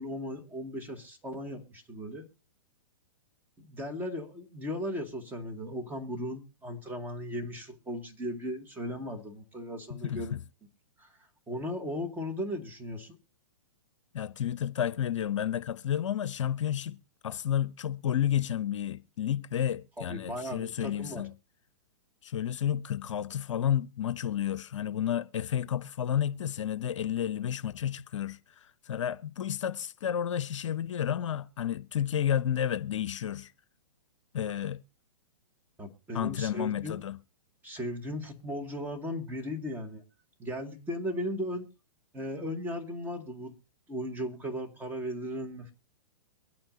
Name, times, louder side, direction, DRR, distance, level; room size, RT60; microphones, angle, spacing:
voice 1, 0.0-2.3 3.6-10.4 11.0-11.1 11.5-13.2 20.0-21.2 35.8-37.0 37.6-40.0 40.4-41.7 42.1-43.6 43.9-45.7, equal, 10° right, 2.1 m, -37 dB
voice 2, 9.9-10.4 14.1-17.0 17.2-21.3 22.2-33.5 34.3-34.8 36.1-37.2, left 10 dB, 65° left, 0.6 m, -31 dB
23.5 x 8.8 x 2.7 m
hypercardioid pair, 120°, 17 cm